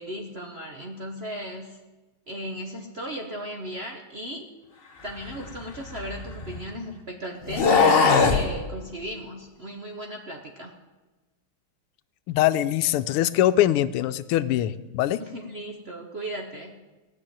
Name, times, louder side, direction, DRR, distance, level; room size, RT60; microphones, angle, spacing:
voice 1, 0.0-1.8 2.3-4.5 5.0-10.7 15.2-16.7, equal, 45° right, 2 dB, 0.8 m, -36 dB
sound 1, 5.2-6.7 7.4-8.5, left 5 dB, 40° left, 0.9 m, -21 dB
voice 2, 12.3-15.2, left 13 dB, 85° left, 13 dB, 1.5 m, -23 dB
16.0 x 6.2 x 8.9 m, 1.2 s
omnidirectional pair, 2.4 m